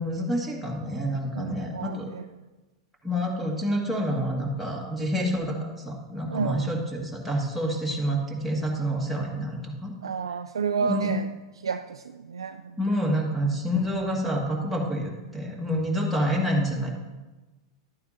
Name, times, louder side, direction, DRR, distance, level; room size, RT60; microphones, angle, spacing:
voice 1, 0.0-2.1 3.0-5.6 5.8-9.9 10.8-11.1 12.8-16.9, equal, ahead, -1 dB, 2.1 m, -28 dB
voice 2, 1.3-2.3 6.3-6.7 10.0-11.3 11.6-12.8, right 6 dB, 80° right, 8 dB, 0.3 m, -30 dB
11.5 x 9.0 x 2.9 m, 1.2 s
hypercardioid pair, 100°, 3 cm